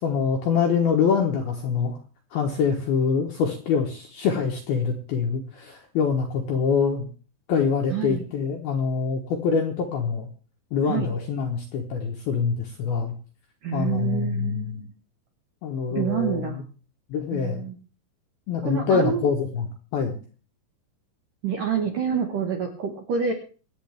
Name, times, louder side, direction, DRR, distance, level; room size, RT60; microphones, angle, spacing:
voice 1, 0.0-2.0 2.3-7.1 7.5-10.3 10.7-13.1 13.7-14.8 15.6-16.6 17.1-17.7 18.5-19.7 19.9-20.2, left 6 dB, 70° left, 3 dB, 2.4 m, -25 dB
voice 2, 7.9-8.3 10.9-11.1 13.6-14.9 15.9-16.6 17.3-17.8 18.6-19.3 21.4-23.3, right 7 dB, 65° right, 2 dB, 2.1 m, -27 dB
25.5 x 8.5 x 3.5 m, 0.38 s
omnidirectional pair, 5.8 m